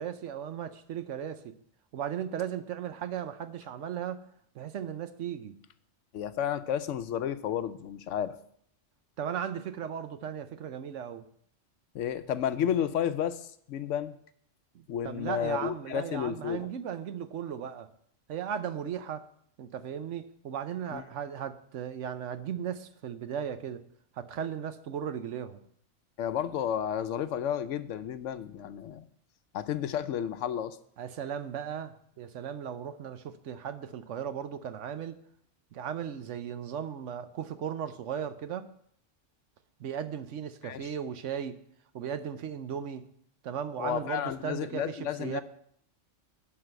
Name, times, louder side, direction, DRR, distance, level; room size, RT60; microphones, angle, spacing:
voice 1, 0.0-1.5 1.9-4.2 4.5-5.5 9.2-11.2 14.7-17.9 18.3-19.2 19.6-23.8 24.2-25.6 31.0-35.2 35.7-38.7 39.8-41.6 41.9-43.1 43.4-45.4, right 8 dB, 80° right, 10 dB, 1.1 m, -36 dB
voice 2, 6.1-8.3 11.9-14.2 14.9-16.7 20.9-21.0 26.2-29.0 29.5-30.8 40.6-40.9 43.8-45.4, left 9 dB, 85° left, 12 dB, 1.0 m, -32 dB
11.0 x 4.0 x 7.7 m, 0.67 s
omnidirectional pair, 1.3 m